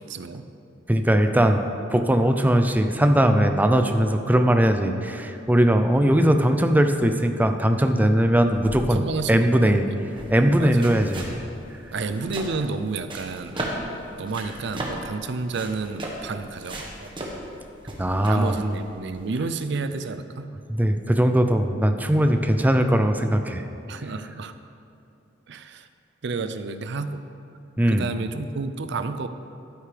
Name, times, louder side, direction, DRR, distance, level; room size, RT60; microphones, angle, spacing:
voice 1, 0.1-0.5 8.9-10.1 10.4-11.0 11.9-13.7 14.2-17.1 18.3-20.5 23.9-24.6 25.5-25.9 26.2-27.2 27.9-29.3, right 4 dB, 65° right, 10 dB, 0.5 m, -30 dB
voice 2, 0.9-1.6 1.9-9.8 10.3-11.4 18.0-18.6 20.7-23.6 27.8-28.1, right 1 dB, 10° right, 6 dB, 0.5 m, -20 dB
sound 1, 8.5-19.4, right 1 dB, 25° right, 1.3 m, -36 dB
12.0 x 9.4 x 3.4 m, 2.7 s
head